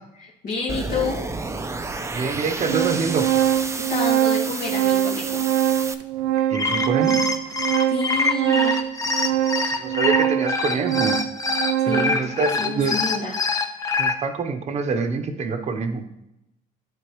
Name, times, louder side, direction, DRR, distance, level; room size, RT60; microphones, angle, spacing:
voice 1, 0.2-1.2 3.7-5.4 7.9-8.8 11.8-13.4, left 3 dB, 55° left, -5 dB, 1.8 m, -29 dB
sound 1, 0.7-5.9, right 3 dB, 15° right, 0.6 m, -31 dB
Organ, 1.0-1.1 1.9-2.0 2.3-12.2, right 11 dB, 90° right, 0.4 m, -23 dB
voice 2, 2.1-3.3 6.5-7.2 9.6-11.2 11.9-13.0 14.0-16.0, right 4 dB, 40° right, 6 dB, 0.9 m, -26 dB
sound 2, 6.4-14.1, left 3 dB, 20° left, 0.9 m, -24 dB
11.5 x 4.5 x 3.1 m, 0.84 s
cardioid pair, 110°, 17 cm